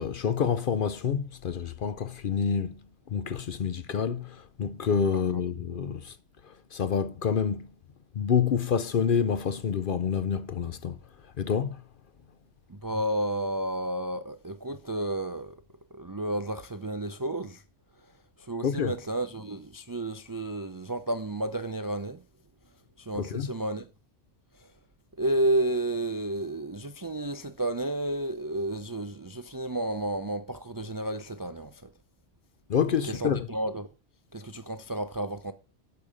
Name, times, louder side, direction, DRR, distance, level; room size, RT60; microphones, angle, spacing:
voice 1, 0.0-2.8 3.1-6.2 6.4-7.7 8.1-11.0 11.4-11.8 18.6-18.9 23.2-23.5 32.7-33.5, left 7 dB, 55° left, 0.7 m, -28 dB
voice 2, 12.7-15.6 15.9-17.6 18.5-22.2 23.0-23.9 25.2-31.8 33.1-33.9 34.3-35.5, right 1 dB, 30° right, 0.4 m, -31 dB
8.6 x 7.0 x 6.4 m
omnidirectional pair, 1.2 m